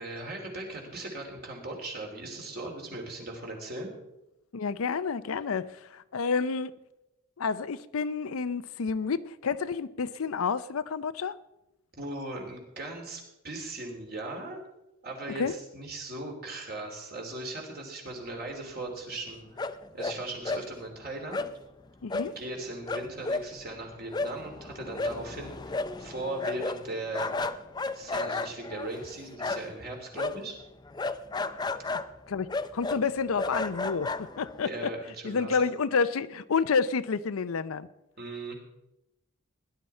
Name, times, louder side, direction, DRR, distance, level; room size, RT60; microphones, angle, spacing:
voice 1, 0.0-3.9 12.0-14.6 15.0-19.7 19.9-21.5 22.3-27.4 27.9-30.6 34.6-35.6 38.2-38.6, right 2 dB, 45° right, 3.1 m, -38 dB
voice 2, 4.5-6.8 7.4-11.4 15.3-15.5 22.0-22.4 32.3-34.9 35.2-37.9, left 5 dB, 75° left, 0.5 m, -29 dB
sound 1, 19.6-20.2 20.4-20.7 21.3-21.5 22.1-22.3 22.6-22.7 22.9-29.8 30.1-34.7, left 3 dB, 20° left, 0.4 m, -33 dB
17.5 x 11.0 x 4.3 m
head